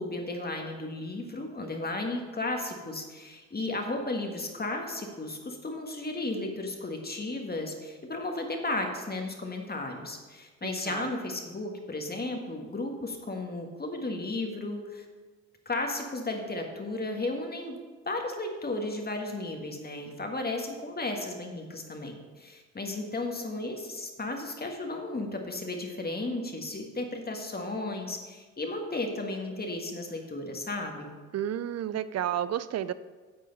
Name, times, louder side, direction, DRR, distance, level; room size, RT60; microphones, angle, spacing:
voice 1, 0.0-15.1 15.7-17.8 18.0-31.1, left 2 dB, 25° left, 3 dB, 1.6 m, -34 dB
voice 2, 10.6-11.1 31.3-32.9, right 10 dB, 45° right, 15 dB, 0.5 m, -31 dB
10.5 x 7.5 x 4.0 m, 1.4 s
hypercardioid pair, 50°, 38 cm